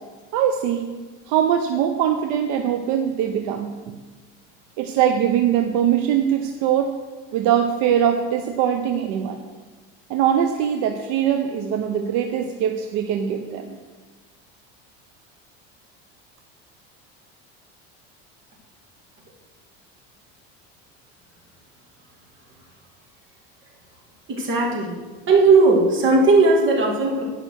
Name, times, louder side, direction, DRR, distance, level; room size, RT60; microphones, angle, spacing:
voice 1, 0.3-0.9 1.3-3.9 4.8-6.9 7.3-9.4 10.1-13.8, right 9 dB, 70° right, 5 dB, 0.8 m, -22 dB
voice 2, 24.3-25.0 25.3-27.2, right 3 dB, 40° right, -2 dB, 2.6 m, -17 dB
10.0 x 5.7 x 6.4 m, 1.3 s
cardioid pair, 130°, 30 cm